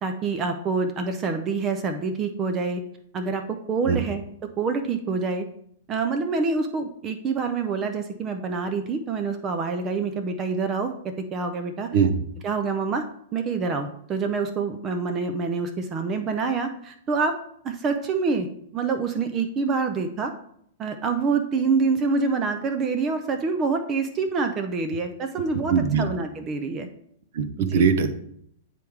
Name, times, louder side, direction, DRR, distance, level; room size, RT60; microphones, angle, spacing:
voice 1, 0.0-2.8 3.1-5.5 5.9-11.9 12.4-13.0 13.3-17.4 17.6-18.5 18.7-20.3 20.8-26.9 27.6-27.8, right 4 dB, 25° right, 7 dB, 0.5 m, -26 dB
voice 2, 11.9-12.2 25.7-26.1 27.3-28.1, right 6 dB, 65° right, 10 dB, 0.7 m, -21 dB
9.1 x 3.3 x 3.5 m, 0.70 s
hypercardioid pair, 145°, 0 cm